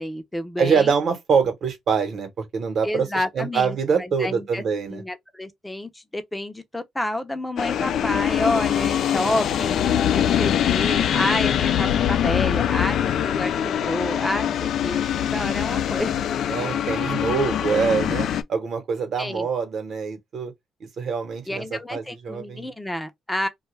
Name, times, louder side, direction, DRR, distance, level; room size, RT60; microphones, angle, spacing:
voice 1, 0.0-0.9 2.8-4.6 4.9-16.1 19.2-19.5 21.5-23.5, left 1 dB, 10° left, 0.6 m, -29 dB
voice 2, 0.6-5.0 16.5-20.5 21.0-22.7, right 6 dB, 60° right, 1.0 m, -24 dB
sound 1, 7.6-18.4, left 10 dB, 70° left, 0.3 m, -23 dB
2.3 x 2.3 x 3.1 m
cardioid pair, 90°, 0 cm